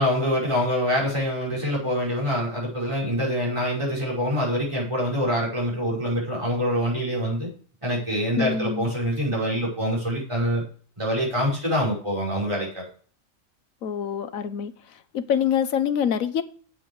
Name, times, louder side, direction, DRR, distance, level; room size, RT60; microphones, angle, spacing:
voice 1, 0.0-7.5 7.8-10.6 11.0-12.9, equal, 20° right, 5.4 m, -25 dB
voice 2, 8.4-8.9 13.8-14.7 15.1-16.4, left 8 dB, 85° left, 1.3 m, -25 dB
10.0 x 7.9 x 4.8 m
omnidirectional pair, 1.4 m